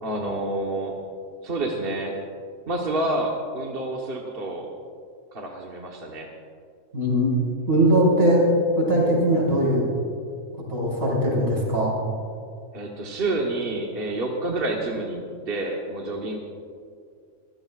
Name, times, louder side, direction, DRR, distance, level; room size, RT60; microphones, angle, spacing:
voice 1, 0.0-1.0 1.4-2.1 2.7-4.7 5.3-6.3 12.7-16.4, right 2 dB, 45° right, -1 dB, 1.4 m, -28 dB
voice 2, 6.9-7.3 7.7-8.4 8.8-9.8 10.7-11.9, right 1 dB, 70° right, -5 dB, 5.1 m, -20 dB
25.0 x 15.5 x 2.4 m, 2.2 s
omnidirectional pair, 1.4 m